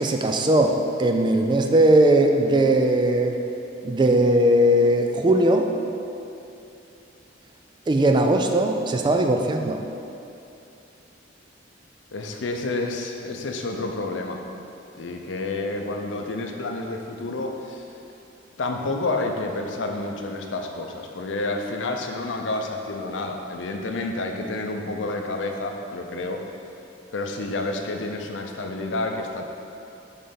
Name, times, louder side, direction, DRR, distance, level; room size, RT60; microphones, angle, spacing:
voice 1, 0.0-3.4 3.8-5.7 7.9-9.8, right 1 dB, 25° right, 4 dB, 0.3 m, -19 dB
voice 2, 12.1-14.4 15.0-17.9 18.6-26.4 27.1-29.5, left 2 dB, 80° left, 3 dB, 0.6 m, -29 dB
5.4 x 4.1 x 5.7 m, 2.8 s
head